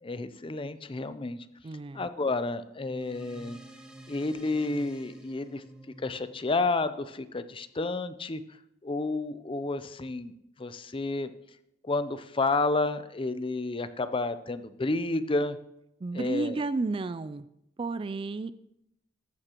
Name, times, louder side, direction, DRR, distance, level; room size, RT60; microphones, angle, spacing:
voice 1, 0.0-1.4 1.9-3.6 4.1-5.6 6.0-8.4 8.8-10.3 10.6-11.3 11.8-15.6 16.1-16.6, left 3 dB, 30° left, 12 dB, 0.6 m, -30 dB
voice 2, 1.6-2.1 16.0-17.4 17.8-18.5, right 3 dB, 30° right, 14 dB, 0.3 m, -32 dB
sound 1, 2.9-7.7, right 1 dB, 5° right, 1.1 m, -50 dB
15.0 x 11.5 x 3.0 m, 0.80 s
head